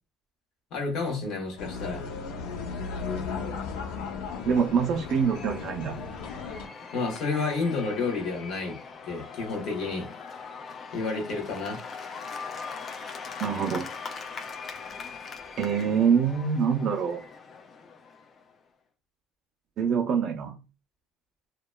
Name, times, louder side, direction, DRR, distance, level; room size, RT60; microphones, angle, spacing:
voice 1, 0.7-2.1 6.9-8.8 9.1-10.1 10.9-11.8, left 4 dB, 55° left, 1.0 m, -30 dB
sound 1, 1.6-6.7, left 5 dB, 90° left, 0.5 m, -35 dB
Cheering / Applause / Crowd, 3.8-18.5, left 5 dB, 30° left, 0.3 m, -41 dB
voice 2, 4.4-6.0 13.4-13.9 15.6-17.2 19.8-20.5, right 6 dB, 50° right, 0.3 m, -25 dB
2.8 x 2.2 x 2.2 m
cardioid pair, 145°, 0 cm